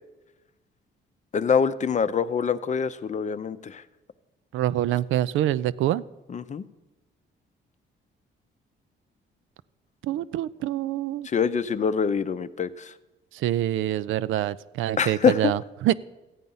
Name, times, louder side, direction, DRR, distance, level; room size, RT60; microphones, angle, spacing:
voice 1, 1.3-3.8 6.3-6.6 11.2-12.9 15.0-15.5, left 6 dB, 35° left, 13 dB, 0.6 m, -25 dB
voice 2, 4.5-6.0 10.0-11.3 13.3-15.9, right 13 dB, 80° right, 16 dB, 0.4 m, -25 dB
14.0 x 8.9 x 5.5 m, 1.1 s
cardioid pair, 90°, 20 cm